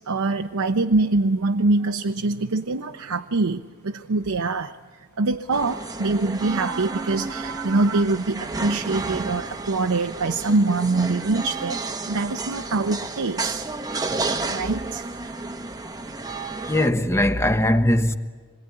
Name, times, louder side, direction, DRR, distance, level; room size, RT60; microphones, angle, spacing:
voice 1, 0.1-4.7 5.2-13.6 14.5-15.1, right 3 dB, 85° right, 0.8 m, -24 dB
sound 1, 5.5-16.9, right 3 dB, 20° right, 0.9 m, -31 dB
voice 2, 16.6-18.2, left 1 dB, 15° left, 1.1 m, -20 dB
26.5 x 22.0 x 9.8 m
head